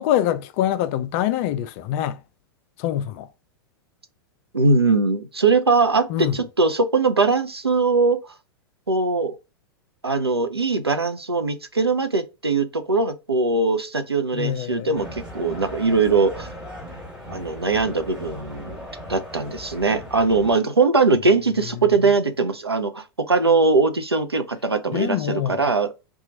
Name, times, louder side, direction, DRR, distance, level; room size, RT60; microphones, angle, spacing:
voice 1, 0.0-2.2 2.8-3.3 6.1-6.4 14.3-15.0 24.9-25.7, left 11 dB, 35° left, 0.3 m, -24 dB
voice 2, 4.5-8.2 8.9-9.4 10.0-16.5 17.3-18.8 19.1-26.1, right 3 dB, 85° right, 0.5 m, -21 dB
sound 1, 14.9-20.6, equal, 5° right, 1.2 m, -38 dB
2.9 x 2.3 x 3.7 m
figure-of-eight pair, 95°, 13 cm